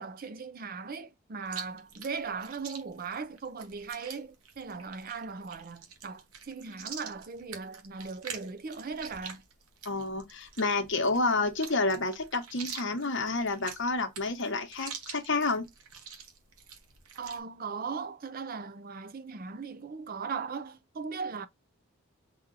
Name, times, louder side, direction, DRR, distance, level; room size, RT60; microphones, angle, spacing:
voice 1, 0.0-9.4 17.2-21.5, right 5 dB, 40° right, 0.5 m, -38 dB
Chewing mastication, 1.5-17.4, right 6 dB, 80° right, 1.1 m, -46 dB
voice 2, 9.8-15.7, left 3 dB, 55° left, 1.0 m, -29 dB
4.0 x 2.8 x 3.9 m
head